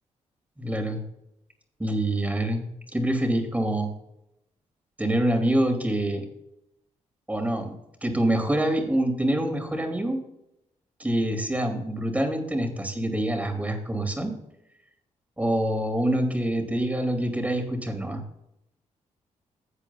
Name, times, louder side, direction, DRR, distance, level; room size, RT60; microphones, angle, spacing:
voice 1, 0.6-1.0 1.8-2.6 2.9-3.9 5.0-6.3 7.3-10.2 11.0-14.3 15.4-18.2, right 1 dB, 10° right, 3 dB, 2.5 m, -26 dB
16.5 x 8.2 x 2.3 m, 0.82 s
cardioid pair, 90°, 13 cm